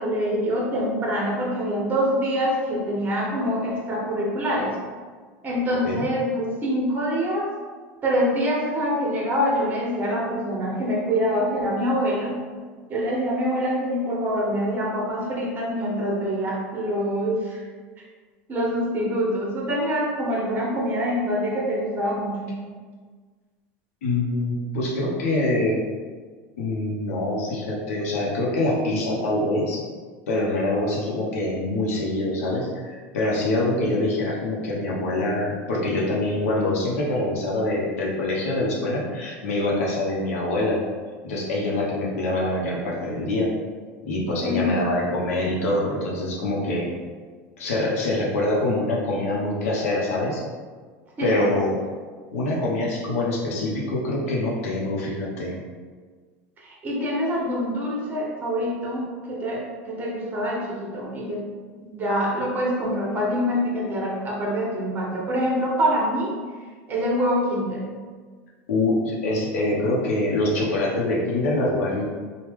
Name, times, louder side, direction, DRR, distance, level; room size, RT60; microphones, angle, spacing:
voice 1, 0.0-4.8 5.4-7.5 8.0-12.4 12.9-17.6 18.5-22.6 44.4-44.8 51.2-51.5 56.6-61.4 61.8-66.3 66.9-67.8, equal, 25° right, -4 dB, 1.0 m, -25 dB
voice 2, 5.7-6.1 24.0-25.9 26.6-29.9 30.3-40.9 41.2-43.6 44.0-46.9 47.6-50.4 51.2-51.8 52.3-55.6 68.7-72.0, left 1 dB, 90° left, -4 dB, 0.8 m, -25 dB
3.1 x 2.3 x 3.5 m, 1.5 s
supercardioid pair, 130°, 7 cm